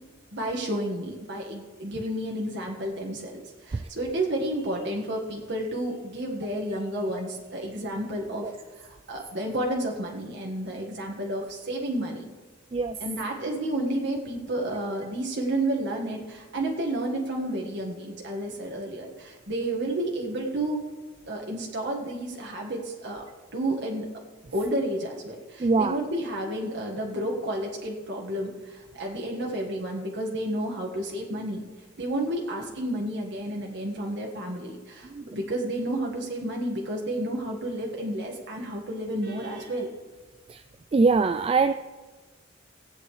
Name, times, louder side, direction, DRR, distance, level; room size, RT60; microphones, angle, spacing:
voice 1, 0.3-12.3 13.0-20.8 21.3-23.2 23.5-24.0 24.5-31.6 32.0-39.9, right 1 dB, 65° right, -1 dB, 1.7 m, -31 dB
voice 2, 25.6-26.0 35.1-35.3 40.5-40.6 40.9-41.7, right 4 dB, 30° right, 9 dB, 0.3 m, -23 dB
18.0 x 8.9 x 3.3 m, 1.2 s
head